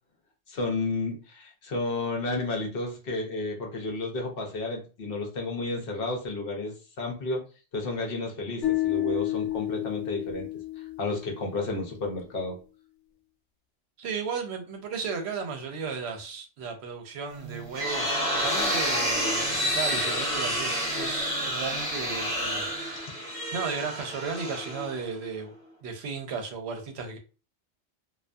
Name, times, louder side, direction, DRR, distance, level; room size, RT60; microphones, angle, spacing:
voice 1, 0.5-7.4 7.7-10.5 10.8-12.6, left 2 dB, 60° left, 0.9 m, -32 dB
sound 1, 8.6-11.8, left 16 dB, 85° left, 0.9 m, -30 dB
voice 2, 14.0-22.7 23.5-25.5 25.8-27.2, right 5 dB, 70° right, 0.9 m, -35 dB
sound 2, 17.4-25.3, equal, 35° right, 0.8 m, -29 dB
2.5 x 2.3 x 2.2 m
omnidirectional pair, 1.2 m